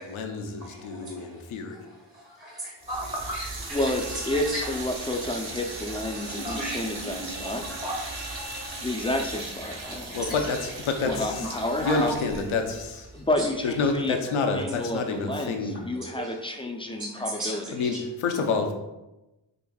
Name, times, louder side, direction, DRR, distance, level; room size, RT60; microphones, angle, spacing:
voice 1, 0.0-1.8 10.1-11.5 11.8-13.1 13.6-15.9 17.7-18.7, left 4 dB, 80° left, 4 dB, 0.6 m, -28 dB
voice 2, 0.6-1.4 1.7-3.9 4.3-4.6 6.2-7.0 7.7-8.0 9.6-10.6 11.4-11.5 11.8-12.0 13.4-13.5 16.2-16.3 17.0-17.1 17.4-18.0, right 1 dB, 15° right, -4 dB, 0.8 m, -37 dB
sound 1, 2.8-13.9, right 2 dB, 50° right, 1.0 m, -38 dB
sound 2, 2.9-9.2, right 2 dB, 85° right, 0.9 m, -43 dB
voice 3, 3.7-10.3 11.0-12.1 13.1-14.2 14.5-17.6, left 1 dB, 10° left, 3 dB, 0.4 m, -30 dB
4.9 x 2.5 x 2.3 m, 0.98 s
cardioid pair, 55°, 48 cm